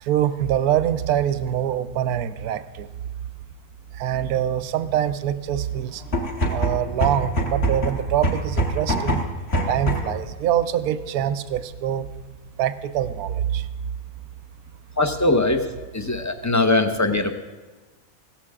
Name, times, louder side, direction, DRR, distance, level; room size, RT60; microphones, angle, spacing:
voice 1, 0.0-2.9 3.9-6.0 6.5-9.2 9.7-12.1 12.6-13.7, right 10 dB, 80° right, 12 dB, 1.1 m, -24 dB
sound 1, 6.0-10.2, right 1 dB, 45° left, 2.0 m, -24 dB
voice 2, 15.0-15.6 15.9-17.3, left 2 dB, 15° left, 6 dB, 0.8 m, -21 dB
16.5 x 14.5 x 3.7 m, 1.3 s
omnidirectional pair, 1.6 m